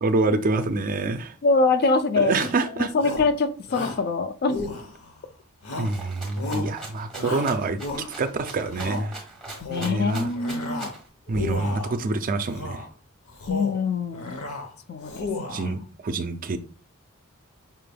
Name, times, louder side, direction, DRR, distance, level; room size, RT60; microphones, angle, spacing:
voice 1, 0.0-1.3 2.2-2.9 5.8-9.2 9.8-10.3 11.3-12.9 15.5-16.6, right 3 dB, 40° right, 0.4 m, -26 dB
voice 2, 1.4-2.4 2.8-4.6 9.6-10.9 11.4-11.5 13.5-14.3 14.9-15.7, left 3 dB, 45° left, 0.4 m, -24 dB
Shout, 2.3-2.6 3.0-3.3 3.7-4.0 4.5-5.2 5.6-6.0 6.3-6.7 7.2-8.3 8.7-9.1 9.5-10.0 10.3-11.0 11.3-12.0 12.5-12.9 13.3-13.8 14.1-14.7 15.0-15.7, left 2 dB, 85° left, 0.8 m, -33 dB
Rattle (instrument), 5.8-11.1, right 2 dB, 5° left, 1.2 m, -41 dB
5.6 x 3.3 x 2.2 m
head